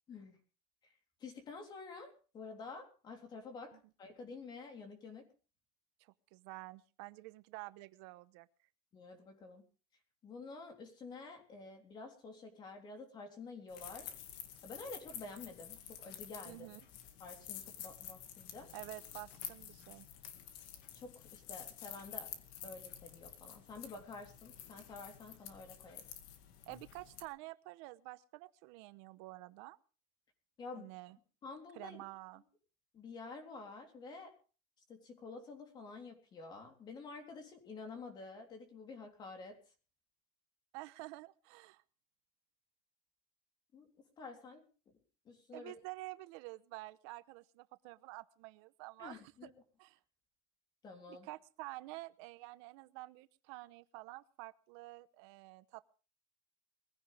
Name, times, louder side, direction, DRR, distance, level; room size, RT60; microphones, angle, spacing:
voice 1, 1.2-5.3 8.9-9.7 10.2-14.1 14.6-16.7 17.2-18.7 20.9-22.3 22.6-26.1 30.6-30.9 31.4-32.0 32.9-34.3 34.9-39.6 43.7-43.9 44.2-44.6 45.3-45.7 49.0-49.5 50.8-51.3, left 3 dB, 30° left, 5 dB, 3.5 m, -49 dB
voice 2, 6.0-8.5 16.4-16.8 18.7-20.1 26.7-29.8 30.7-31.2 31.7-32.4 40.7-41.8 45.5-49.2 49.8-50.0 51.1-55.9, right 21 dB, 85° right, 14 dB, 0.9 m, -49 dB
sound 1, 13.7-27.2, left 10 dB, 75° left, 2.2 m, -50 dB
21.0 x 15.5 x 3.4 m, 0.36 s
cardioid pair, 165°, 14 cm